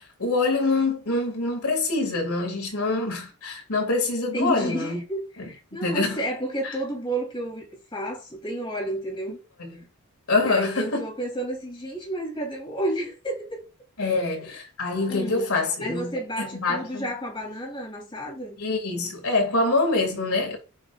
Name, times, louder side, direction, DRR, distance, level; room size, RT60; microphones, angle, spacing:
voice 1, 0.2-5.0 5.4-5.5 5.8-6.2 6.6-6.7 9.6-9.8 10.3-11.1 14.0-17.1 18.6-20.6, left 3 dB, 75° left, 2.5 m, -25 dB
voice 2, 4.3-7.6 7.9-9.4 10.4-13.6 14.0-14.4 15.1-15.5 15.8-18.6, right 1 dB, 25° left, 3.4 m, -31 dB
8.3 x 5.0 x 2.5 m
head